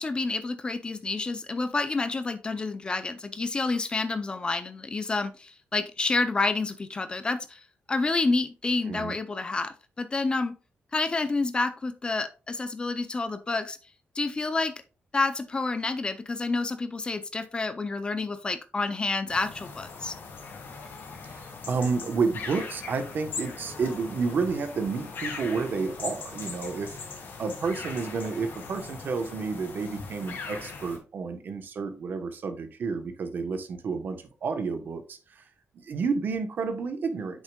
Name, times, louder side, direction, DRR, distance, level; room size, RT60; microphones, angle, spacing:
voice 1, 0.0-7.6 7.9-10.6 10.9-13.8 14.2-14.7 15.1-20.2, left 3 dB, 20° left, 0.5 m, -29 dB
sound 1, 19.3-31.0, left 4 dB, 55° left, 1.9 m, -40 dB
voice 2, 21.2-27.0 27.4-35.4 35.7-37.4, right 4 dB, 50° right, 1.0 m, -30 dB
8.6 x 6.3 x 2.3 m
wide cardioid pair, 170°, 4 cm